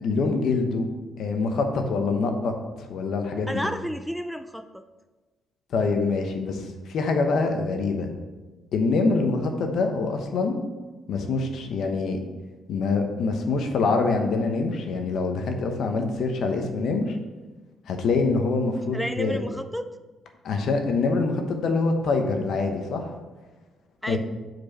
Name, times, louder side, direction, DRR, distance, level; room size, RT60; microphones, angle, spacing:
voice 1, 0.0-0.9 1.2-3.7 5.7-8.1 8.7-10.6 11.1-12.2 12.7-17.2 17.9-19.4 20.4-23.1 24.1-24.2, left 3 dB, 70° left, 4 dB, 0.9 m, -25 dB
voice 2, 3.5-4.8 18.9-19.9 24.0-24.2, equal, ahead, 9 dB, 0.3 m, -31 dB
5.1 x 4.6 x 5.8 m, 1.2 s
cardioid pair, 90°, 0 cm